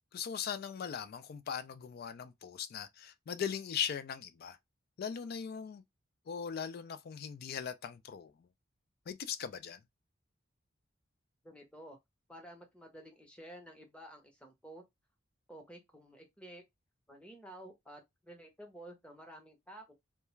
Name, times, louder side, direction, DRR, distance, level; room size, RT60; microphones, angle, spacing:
voice 1, 0.1-4.6 5.0-5.8 6.3-8.5 9.1-9.8, left 7 dB, 50° left, 0.3 m, -39 dB
voice 2, 11.4-12.0 12.3-14.8 15.5-16.6 17.1-19.9, right 1 dB, 5° left, 0.7 m, -52 dB
2.3 x 2.2 x 3.0 m
head